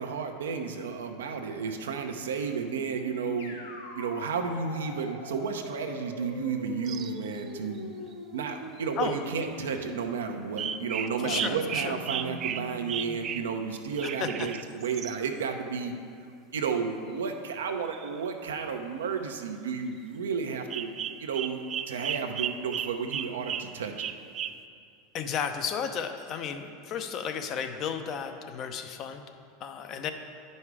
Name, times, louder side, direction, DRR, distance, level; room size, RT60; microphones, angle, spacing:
voice 1, 0.0-3.6 3.9-7.9 8.3-15.9 16.5-20.9 21.2-24.1, right 5 dB, 85° right, 5 dB, 0.8 m, -32 dB
sound 1, 3.4-13.3, left 2 dB, 85° left, 1.3 m, -43 dB
sound 2, 6.9-7.5 8.8-8.9 10.6-15.2 17.9-18.2 20.7-24.6, right 9 dB, 40° right, 0.3 m, -35 dB
voice 2, 11.2-12.0 14.2-14.5 25.1-29.2 29.6-30.1, left 7 dB, 45° left, 7 dB, 0.7 m, -33 dB
9.9 x 5.4 x 4.8 m, 2.3 s
hypercardioid pair, 100°, 0 cm